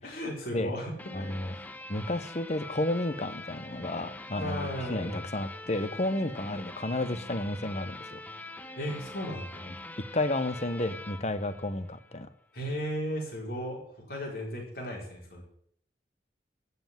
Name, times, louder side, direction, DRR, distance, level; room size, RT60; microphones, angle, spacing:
voice 1, 0.0-1.6 4.3-5.3 8.8-9.6 12.5-15.4, equal, 55° left, -1 dB, 4.7 m, -36 dB
sound 1, 1.0-12.3, left 2 dB, 10° left, 0.6 m, -44 dB
voice 2, 1.1-1.5 1.9-8.2 9.7-9.8 10.1-12.3, left 1 dB, 35° left, 12 dB, 0.9 m, -32 dB
15.0 x 5.8 x 9.1 m, 0.66 s
head